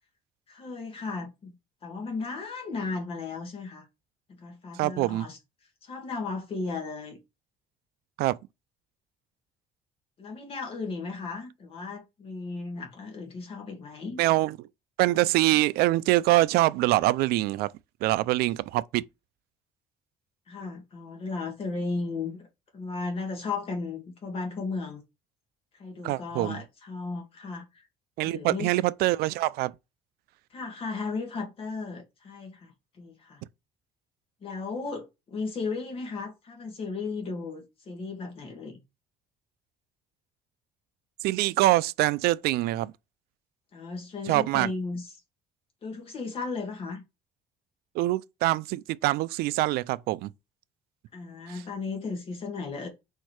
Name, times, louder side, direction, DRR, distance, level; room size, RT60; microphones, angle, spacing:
voice 1, 0.5-1.6 1.8-3.9 4.3-5.4 5.8-7.2 10.2-14.2 20.5-22.5 22.7-25.0 25.8-27.8 28.2-28.7 30.5-33.4 34.4-38.8 43.7-45.2 45.8-47.0 51.1-52.9, left 4 dB, 35° left, 1.8 m, -35 dB
voice 2, 4.8-5.3 8.2-8.4 14.2-14.6 15.0-17.7 18.0-19.0 26.0-26.6 28.2-29.7 41.2-42.9 44.3-44.7 48.0-50.3, right 17 dB, 85° right, 0.4 m, -24 dB
4.5 x 4.5 x 4.7 m
cardioid pair, 170°, 16 cm